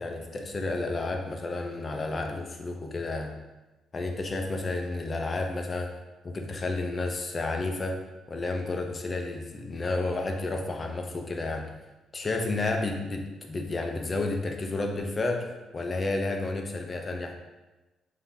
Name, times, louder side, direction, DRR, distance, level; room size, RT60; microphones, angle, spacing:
voice 1, 0.0-3.3 3.9-5.9 6.2-8.0 8.3-11.7 12.1-17.4, left 2 dB, 35° left, 4 dB, 0.5 m, -31 dB
3.4 x 2.7 x 3.8 m, 1.1 s
cardioid pair, 90°, 0 cm